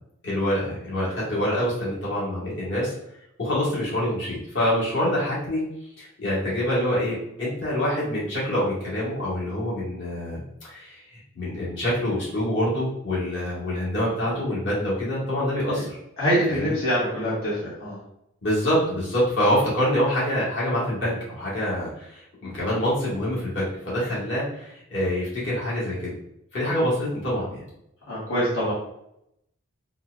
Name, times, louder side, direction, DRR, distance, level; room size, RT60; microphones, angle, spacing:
voice 1, 0.2-2.9 3.4-5.6 6.0-16.0 16.5-16.7 18.4-26.2 26.5-27.6, equal, 60° left, -8 dB, 1.4 m, -26 dB
voice 2, 16.2-18.0 28.1-28.7, equal, 80° left, -8 dB, 1.2 m, -24 dB
4.2 x 2.4 x 2.3 m, 0.79 s
head